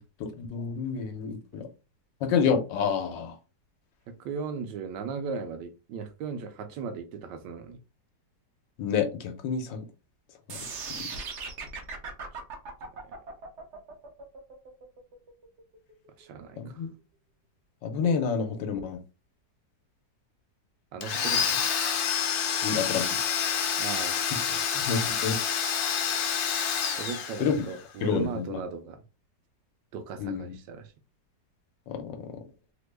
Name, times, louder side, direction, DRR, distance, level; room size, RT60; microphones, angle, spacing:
voice 1, 0.2-1.7 2.2-3.3 8.8-9.8 10.5-10.6 16.6-16.9 17.8-19.0 22.6-23.1 24.9-25.4 27.4-27.7 28.0-28.6 30.2-30.5 31.9-32.3, left 6 dB, 85° left, 1.3 m, -28 dB
voice 2, 4.1-7.8 13.0-13.2 16.2-16.8 20.9-21.6 23.8-24.2 24.5-25.3 26.9-29.0 29.9-30.9, right 5 dB, 75° right, 1.2 m, -37 dB
sound 1, 10.5-16.5, right 4 dB, 60° right, 0.7 m, -39 dB
Domestic sounds home sounds, 21.0-27.8, left 7 dB, 70° left, 1.0 m, -28 dB
3.4 x 2.0 x 3.2 m
omnidirectional pair, 1.9 m